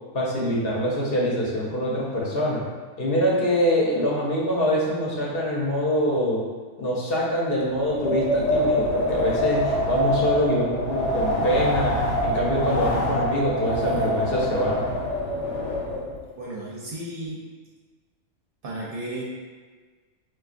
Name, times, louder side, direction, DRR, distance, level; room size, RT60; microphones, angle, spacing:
voice 1, 0.1-2.6 3.0-6.5 6.8-14.8, equal, 60° left, -5 dB, 0.9 m, -24 dB
Wind, 7.7-16.2, left 1 dB, 80° left, 1.0 m, -25 dB
voice 2, 16.4-17.4 18.6-19.2, right 1 dB, 60° right, -4 dB, 0.7 m, -34 dB
4.5 x 2.3 x 2.4 m, 1.4 s
omnidirectional pair, 1.2 m